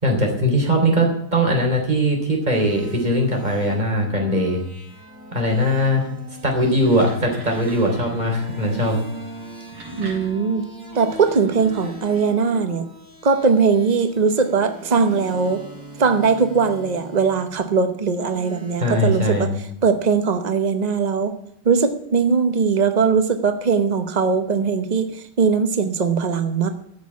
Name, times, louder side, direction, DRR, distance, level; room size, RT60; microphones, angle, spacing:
voice 1, 0.0-4.6 5.3-6.1 6.4-9.0 18.8-19.5, equal, 20° right, 1 dB, 3.6 m, -20 dB
sound 1, 2.5-19.4, equal, 35° right, 4.4 m, -40 dB
sound 2, 6.8-8.3 9.4-12.5, right 1 dB, 80° right, 4.5 m, -41 dB
voice 2, 10.0-10.6 10.9-12.8 13.2-15.6 16.0-19.5 19.8-21.3 21.6-26.7, right 5 dB, 65° right, 8 dB, 0.4 m, -20 dB
14.0 x 6.4 x 8.4 m, 0.74 s
omnidirectional pair, 2.2 m